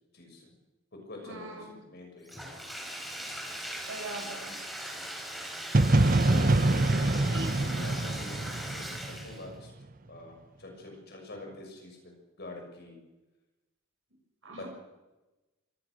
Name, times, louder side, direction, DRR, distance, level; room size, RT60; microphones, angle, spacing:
voice 1, 0.1-0.5 1.0-2.6 6.1-9.7 10.1-13.0 14.5-14.7, left 2 dB, 50° left, 2 dB, 6.7 m, -46 dB
voice 2, 1.3-1.7 3.9-4.6 6.1-6.3 7.3-7.8 14.4-14.7, right 2 dB, 65° right, 2 dB, 6.3 m, -41 dB
Bathtub (filling or washing), 2.3-9.5, equal, ahead, 5.4 m, -40 dB
sound 1, 5.7-9.6, right 2 dB, 40° right, 1.0 m, -25 dB
24.0 x 19.0 x 6.5 m, 1.1 s
head